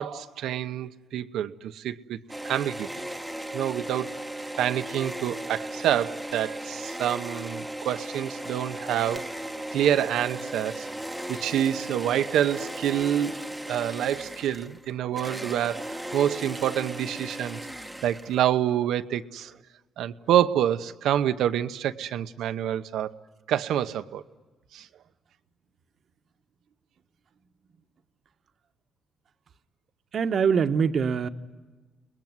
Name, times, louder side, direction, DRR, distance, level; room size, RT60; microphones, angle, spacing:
voice 1, 0.0-2.2 2.4-3.0 3.5-4.2 4.6-9.3 9.7-10.9 11.3-13.4 13.7-17.6 18.0-19.5 20.0-23.2 23.5-24.2 24.7-24.9, right 11 dB, 85° right, 1.0 m, -27 dB
sound 1, 2.3-18.6, right 1 dB, 5° right, 1.1 m, -36 dB
voice 2, 30.1-31.3, right 6 dB, 50° right, 1.2 m, -23 dB
30.0 x 21.0 x 9.5 m
cardioid pair, 130°, 0 cm